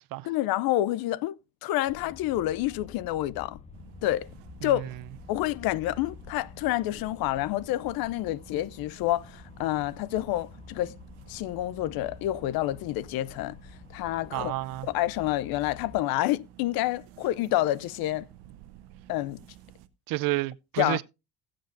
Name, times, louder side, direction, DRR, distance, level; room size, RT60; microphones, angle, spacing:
voice 1, 0.2-3.6 4.0-4.3 4.6-4.8 5.3-10.9 11.3-13.6 13.9-14.5 14.8-18.3 19.1-19.4 20.8-21.0, left 15 dB, 65° left, 0.6 m, -28 dB
sound 1, 1.9-16.0, left 5 dB, 15° left, 0.6 m, -49 dB
sound 2, 3.7-19.9, right 13 dB, 80° right, 0.9 m, -53 dB
voice 2, 14.3-14.9 20.1-21.0, right 19 dB, 60° right, 0.6 m, -30 dB
17.0 x 7.5 x 2.6 m
supercardioid pair, 90°, 40 cm